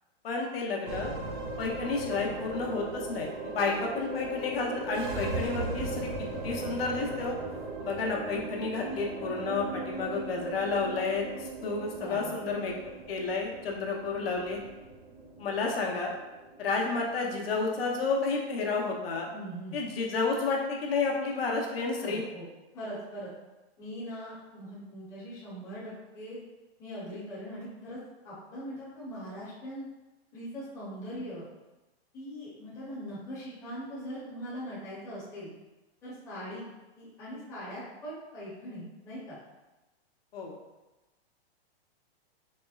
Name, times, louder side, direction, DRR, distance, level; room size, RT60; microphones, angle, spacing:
voice 1, 0.2-1.1 1.6-6.1 6.4-7.4 7.8-12.7 13.1-14.6 15.4-16.1 16.6-19.3 19.7-22.2 40.3-40.5, left 4 dB, 65° left, 0 dB, 0.8 m, -31 dB
sound 1, 0.9-19.4, right 2 dB, 50° right, 0.6 m, -38 dB
voice 2, 12.0-12.4 19.3-19.8 22.0-22.5 22.7-23.3 23.8-26.4 26.8-28.0 28.2-29.9 30.3-31.5 32.1-35.5 36.0-36.7 37.0-39.4, equal, 10° left, -10 dB, 0.6 m, -41 dB
4.3 x 3.0 x 2.3 m, 1.1 s
hypercardioid pair, 170°, 32 cm